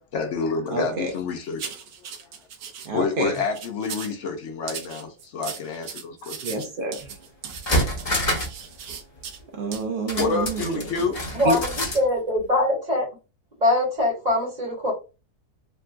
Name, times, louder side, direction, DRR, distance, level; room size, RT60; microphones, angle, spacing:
voice 1, 0.1-1.7 2.9-6.4 10.2-11.2, left 4 dB, 65° left, 0.7 m, -28 dB
voice 2, 0.7-1.1 2.8-3.3 6.4-7.1 9.5-10.9 11.4-11.6, right 2 dB, 85° right, 0.4 m, -28 dB
sound 1, 1.6-2.9 3.3-4.2 4.7-9.4 9.7-9.8 10.2-10.4, right 7 dB, 70° right, 1.1 m, -38 dB
sound 2, 7.0-7.1 7.5-8.6 8.9-9.0 10.1-12.1 12.4-12.5, equal, 30° left, 0.8 m, -27 dB
voice 3, 11.3-13.0 13.6-14.9, left 1 dB, 30° right, 1.2 m, -22 dB
3.6 x 2.2 x 2.4 m
omnidirectional pair, 1.7 m